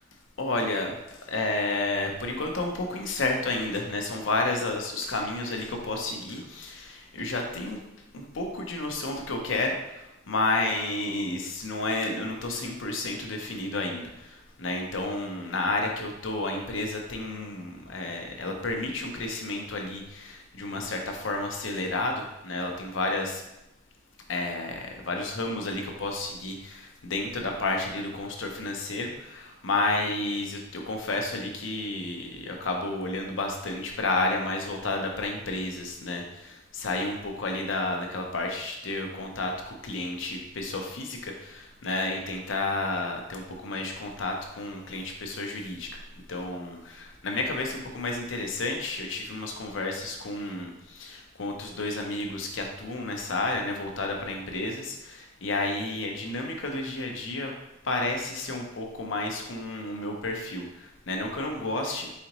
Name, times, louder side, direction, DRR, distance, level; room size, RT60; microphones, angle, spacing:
voice 1, 0.4-7.8 8.1-23.4 24.3-46.0 46.3-57.5 57.8-62.2, left 2 dB, 70° left, 2 dB, 0.7 m, -31 dB
4.1 x 3.8 x 3.0 m, 0.91 s
head